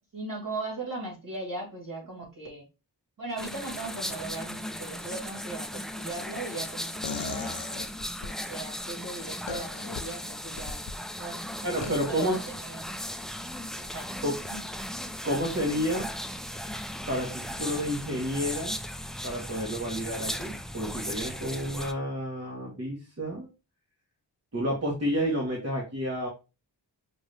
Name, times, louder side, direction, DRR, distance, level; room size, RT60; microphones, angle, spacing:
voice 1, 0.1-2.7 3.2-7.6 8.2-10.8 11.2-12.9 13.8-14.6, right 2 dB, 50° right, -2 dB, 2.8 m, -38 dB
sound 1, 3.4-21.9, equal, ahead, 0.4 m, -37 dB
sound 2, 7.0-8.4 9.5-10.0 10.6-10.9 11.8-12.1, left 6 dB, 80° left, 0.7 m, -37 dB
voice 2, 11.6-12.4 14.2-14.4 15.2-16.1 17.1-18.8 19.2-23.5 24.5-26.3, equal, 35° right, -2 dB, 1.3 m, -30 dB
6.1 x 2.6 x 3.2 m, 0.29 s
wide cardioid pair, 85°, 42 cm